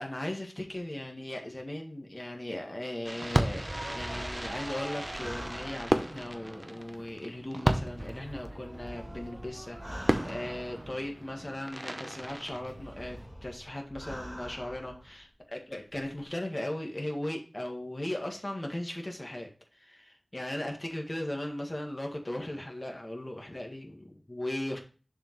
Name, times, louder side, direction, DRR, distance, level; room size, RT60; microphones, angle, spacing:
voice 1, 0.0-24.8, left 1 dB, 40° left, 2 dB, 1.8 m, -38 dB
Fireworks, 3.0-13.3, right 1 dB, 30° right, 0.8 m, -34 dB
sound 1, 4.0-6.5 7.7-11.4 12.2-15.2 15.9-16.2, equal, 5° right, 2.4 m, -45 dB
6.7 x 5.4 x 3.1 m, 0.36 s
wide cardioid pair, 40°, 0 cm